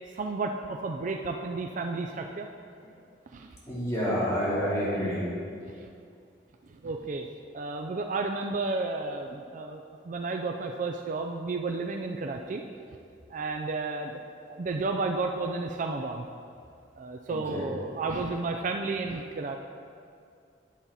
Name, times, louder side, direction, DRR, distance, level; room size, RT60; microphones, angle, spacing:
voice 1, 0.1-2.5 3.3-3.5 6.8-7.3 7.5-12.6 13.3-14.2 14.5-16.2 17.0-19.6, right 3 dB, 45° right, 3 dB, 0.4 m, -32 dB
voice 2, 3.7-5.3 17.3-17.7, equal, 15° left, -10 dB, 2.5 m, -29 dB
10.5 x 7.3 x 4.1 m, 2.4 s
head